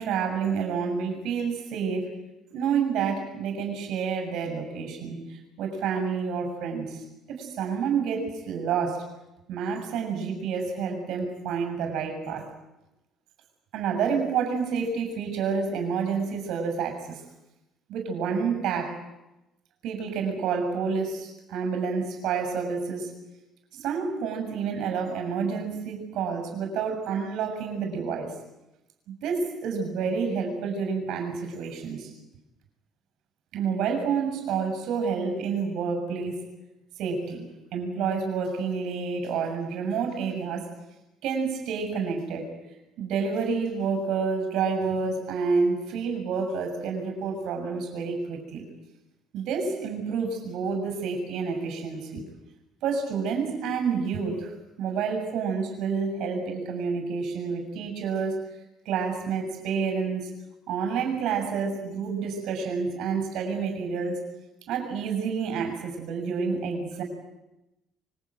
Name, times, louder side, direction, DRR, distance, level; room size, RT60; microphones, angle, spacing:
voice 1, 0.0-2.1 2.5-9.1 9.5-12.5 13.7-17.2 17.9-19.0 19.8-23.1 23.7-28.4 29.1-32.1 33.5-36.4 36.9-37.4 37.7-40.7 41.2-42.5 43.0-48.7 49.3-52.3 52.8-58.4 58.9-60.3 60.7-64.2 64.7-67.0, right 5 dB, 70° right, 5 dB, 7.0 m, -29 dB
25.5 x 23.5 x 9.2 m, 0.95 s
supercardioid pair, 65°, 0 cm